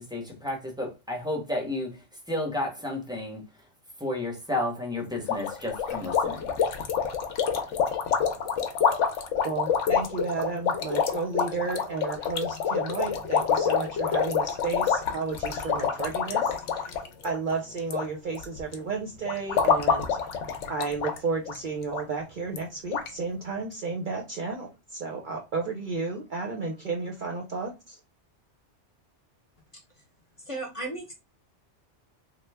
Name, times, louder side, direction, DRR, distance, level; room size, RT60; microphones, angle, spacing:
voice 1, 0.0-3.4 4.0-6.6, left 1 dB, 5° right, 0.6 m, -32 dB
sound 1, 5.3-18.0 18.3-18.7 19.2-21.2 21.4-21.6 21.9-22.0 22.6-22.7 22.9-23.1, left 6 dB, 90° left, 0.9 m, -27 dB
voice 2, 9.4-16.9 17.2-20.1 20.7-28.0, right 4 dB, 55° right, 0.6 m, -32 dB
voice 3, 30.5-31.1, right 2 dB, 30° left, 0.8 m, -34 dB
3.2 x 2.2 x 3.3 m
omnidirectional pair, 1.2 m